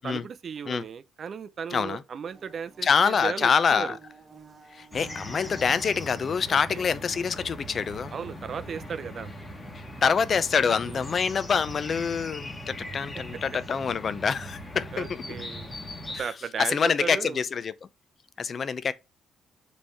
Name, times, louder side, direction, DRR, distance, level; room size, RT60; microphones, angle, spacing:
voice 1, 0.0-4.0 6.5-6.8 8.1-9.3 10.9-11.0 14.9-15.7 16.2-17.4, right 6 dB, 50° right, 0.5 m, -36 dB
voice 2, 1.7-2.0 2.8-4.0 4.7-8.1 9.7-15.2 16.1-16.3 16.6-17.7 18.4-18.9, left 6 dB, 45° left, 0.5 m, -26 dB
Bird / Buzz, 2.2-14.9, right 4 dB, 35° right, 1.2 m, -55 dB
sound 1, 4.9-16.2, equal, 20° left, 1.4 m, -40 dB
5.3 x 3.3 x 5.6 m
cardioid pair, 90°, 0 cm